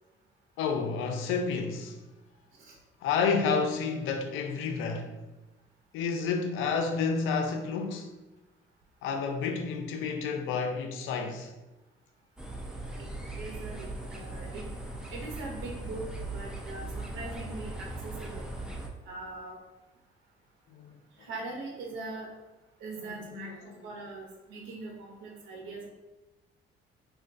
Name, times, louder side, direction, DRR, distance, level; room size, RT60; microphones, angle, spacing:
voice 1, 0.6-2.0 3.0-5.1 5.9-8.1 9.0-11.5 20.7-20.9 23.0-23.7, left 5 dB, 90° left, 0.4 m, -30 dB
sound 1, 12.4-18.9, right 2 dB, 5° right, 0.4 m, -39 dB
voice 2, 13.4-14.7 15.1-18.5 19.1-19.6 21.2-22.3 22.8-25.9, right 3 dB, 85° right, 0.6 m, -41 dB
3.5 x 2.2 x 2.5 m
cardioid pair, 90°, 20 cm